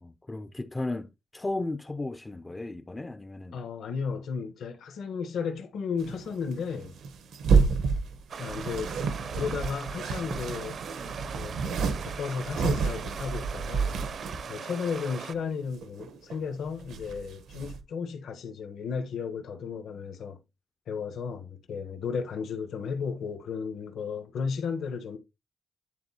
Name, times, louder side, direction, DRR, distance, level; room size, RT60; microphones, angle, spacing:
voice 1, 0.0-3.6, left 2 dB, 15° left, 0.4 m, -35 dB
voice 2, 3.5-7.0 8.4-8.9 9.3-10.8 11.3-11.6 12.0-14.0 14.5-20.4 20.9-25.2, left 6 dB, 70° left, 1.1 m, -34 dB
sound 1, 6.0-14.5 15.1-15.2 15.4-16.4 16.7-17.8, right 5 dB, 85° right, 1.0 m, -30 dB
Stream, 8.3-15.3, right 6 dB, 45° right, 0.5 m, -40 dB
10.5 x 3.9 x 2.8 m
wide cardioid pair, 175°, 0 cm